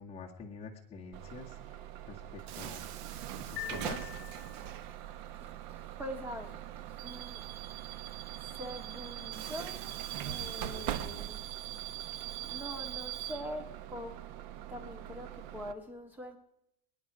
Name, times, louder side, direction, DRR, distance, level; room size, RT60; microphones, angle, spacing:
voice 1, 0.0-2.8 3.1-4.1, left 4 dB, 20° left, 1.7 m, -47 dB
Bus / Alarm, 1.1-15.7, right 12 dB, 60° right, 1.1 m, -41 dB
sound 1, 3.6-5.0, left 13 dB, 55° left, 2.0 m, -44 dB
voice 2, 5.4-7.6 8.4-10.0 10.3-11.5 12.1-14.2 14.7-16.4, equal, 5° right, 1.7 m, -44 dB
27.5 x 9.6 x 4.9 m
supercardioid pair, 145°, 29 cm